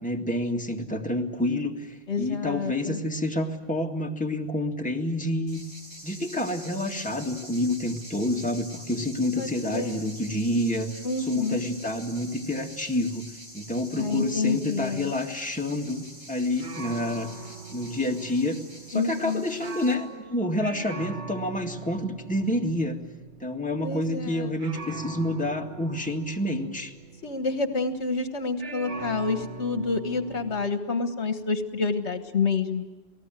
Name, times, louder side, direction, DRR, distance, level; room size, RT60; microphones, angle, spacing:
voice 1, 0.0-5.6 6.0-13.3 13.5-17.3 17.7-18.6 18.9-23.0 23.4-26.9, left 1 dB, 5° left, 1 dB, 1.9 m, -28 dB
voice 2, 2.1-3.0 9.4-10.1 11.0-11.6 13.9-15.1 18.9-19.4 23.8-24.6 27.2-32.9, left 4 dB, 65° left, 8 dB, 1.7 m, -28 dB
sound 1, 5.5-19.9, right 1 dB, 55° right, 5.0 m, -45 dB
sound 2, 15.9-16.3 16.6-28.2 28.6-30.7, right 5 dB, 70° right, 1.5 m, -42 dB
28.5 x 19.0 x 9.1 m, 1.2 s
omnidirectional pair, 1.2 m